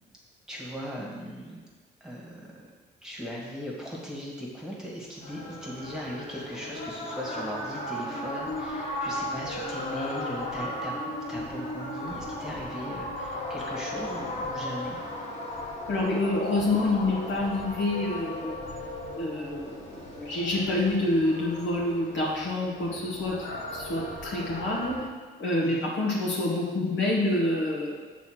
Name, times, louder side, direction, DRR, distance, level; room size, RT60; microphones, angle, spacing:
voice 1, 0.5-1.6 2.0-2.5 3.0-15.0 25.6-25.9, equal, 5° right, -4 dB, 2.1 m, -38 dB
sound 1, 5.2-25.0, left 1 dB, 80° left, 1.8 m, -36 dB
voice 2, 15.9-18.6 19.1-25.0 25.4-28.0, left 2 dB, 65° left, -4 dB, 2.3 m, -27 dB
7.1 x 4.1 x 6.6 m, 1.4 s
cardioid pair, 90°, 20 cm